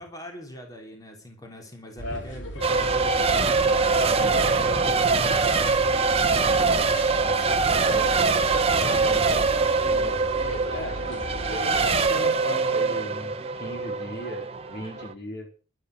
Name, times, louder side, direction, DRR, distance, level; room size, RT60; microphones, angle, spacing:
voice 1, 0.0-7.9 8.2-8.8, equal, 20° left, 3 dB, 3.2 m, -43 dB
sound 1, 2.0-11.9, equal, 85° left, 3.4 m, -37 dB
Race car auto racing / Accelerating revving vroom / Mechanisms, 2.6-15.1, right 4 dB, 30° right, 1.1 m, -23 dB
voice 2, 8.8-9.6 9.9-10.2 10.7-15.5, equal, 55° left, 4 dB, 4.3 m, -37 dB
12.0 x 12.0 x 6.4 m, 0.37 s
head